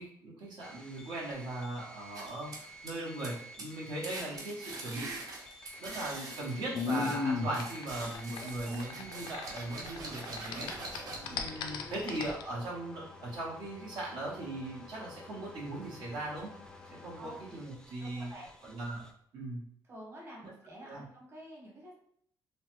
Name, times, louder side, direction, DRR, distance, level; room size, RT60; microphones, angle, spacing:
voice 1, 0.0-2.5 2.8-5.2 5.8-16.5 16.9-18.3 18.6-19.1 19.3-19.6 20.9-21.0, right 1 dB, 75° right, -5 dB, 0.9 m, -39 dB
sound 1, 0.6-19.1, equal, 10° left, 0.3 m, -52 dB
sound 2, 2.1-3.3 3.6-3.8 4.0-7.2 7.5-11.5, right 2 dB, 55° right, 0.8 m, -44 dB
sound 3, 5.6-10.0 10.2-12.4, left 4 dB, 85° left, 0.4 m, -36 dB
voice 2, 8.4-8.8 11.1-11.5 17.2-17.6 18.0-18.5 19.8-21.9, equal, 35° right, -3 dB, 1.1 m, -49 dB
3.1 x 2.1 x 3.0 m, 0.65 s
cardioid pair, 125°, 8 cm